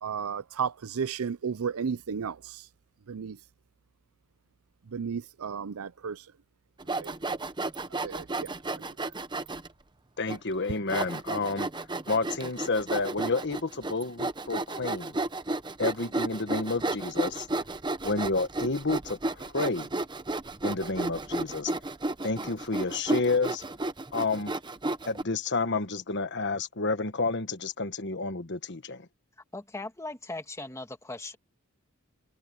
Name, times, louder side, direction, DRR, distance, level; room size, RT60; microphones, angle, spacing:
voice 1, 0.0-2.6 3.1-3.4 4.9-6.2 6.9-7.1 8.0-8.5 8.8-8.9, right 6 dB, 80° right, 0.5 m, -33 dB
Sawing, 6.8-9.7 10.3-10.4 10.9-25.2, right 2 dB, 20° right, 0.9 m, -33 dB
voice 2, 10.2-15.2 15.8-17.5 18.0-19.9 20.6-21.7 22.2-23.6 24.1-24.5 25.0-29.1, left 3 dB, 55° left, 1.4 m, -30 dB
voice 3, 29.5-31.4, left 2 dB, 15° left, 1.8 m, -39 dB
head